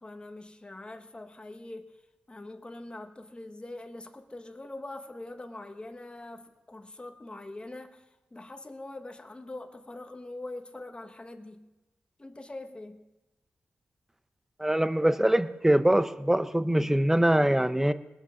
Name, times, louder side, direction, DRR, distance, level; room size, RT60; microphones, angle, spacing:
voice 1, 0.0-1.9 2.3-8.0 8.3-11.7 12.2-13.1, left 2 dB, 25° left, 6 dB, 1.3 m, -43 dB
voice 2, 14.6-17.9, right 1 dB, 10° right, 12 dB, 0.7 m, -23 dB
20.0 x 7.2 x 6.3 m, 1.1 s
cardioid pair, 75°, 4 cm